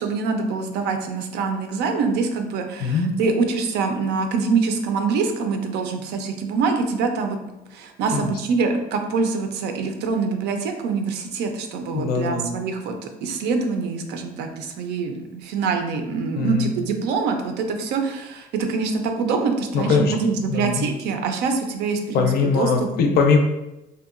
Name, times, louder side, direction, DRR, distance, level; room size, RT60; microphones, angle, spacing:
voice 1, 0.0-7.4 7.7-12.9 13.2-22.9, right 4 dB, 85° right, 5 dB, 0.4 m, -25 dB
voice 2, 2.8-3.2 8.1-8.3 11.9-12.5 16.3-16.7 19.7-20.1 20.5-20.9 22.1-23.4, left 5 dB, 65° left, 4 dB, 0.4 m, -21 dB
2.8 x 2.1 x 2.4 m, 0.96 s
cardioid pair, 110°, 17 cm